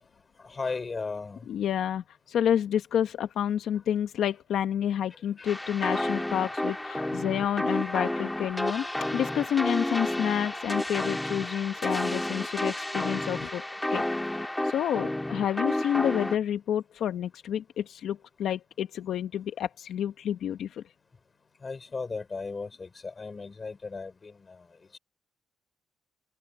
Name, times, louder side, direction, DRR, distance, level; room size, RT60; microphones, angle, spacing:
voice 1, 0.5-1.4 5.4-5.5 21.6-24.3, left 4 dB, 30° left, 3.6 m, -35 dB
voice 2, 1.5-8.9 9.1-13.6 13.9-14.0 14.4-20.8, left 10 dB, 70° left, 1.0 m, -29 dB
sound 1, 5.5-16.4, left 1 dB, 10° left, 3.4 m, -31 dB
cardioid pair, 90°, 0 cm